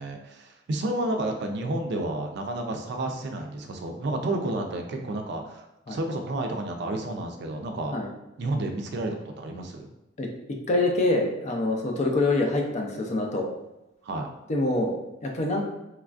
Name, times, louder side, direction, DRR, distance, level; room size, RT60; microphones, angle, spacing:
voice 1, 0.0-8.0 8.4-9.9 12.0-12.1 14.0-14.3, right 2 dB, 65° right, 4 dB, 0.4 m, -31 dB
voice 2, 10.7-13.5 14.5-15.6, left 2 dB, 40° left, 1 dB, 0.4 m, -25 dB
3.1 x 2.3 x 2.4 m, 0.93 s
head